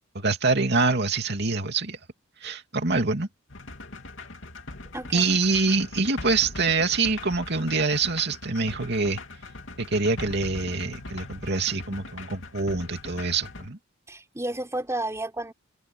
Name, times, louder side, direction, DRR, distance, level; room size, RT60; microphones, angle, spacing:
voice 1, 0.1-2.0 2.4-3.3 5.1-9.2 9.8-13.8, right 3 dB, 55° right, 2.8 m, -25 dB
sound 1, 3.5-13.7, left 2 dB, 70° left, 2.9 m, -41 dB
voice 2, 4.9-5.3 14.1-15.5, right 1 dB, 15° right, 4.3 m, -31 dB
head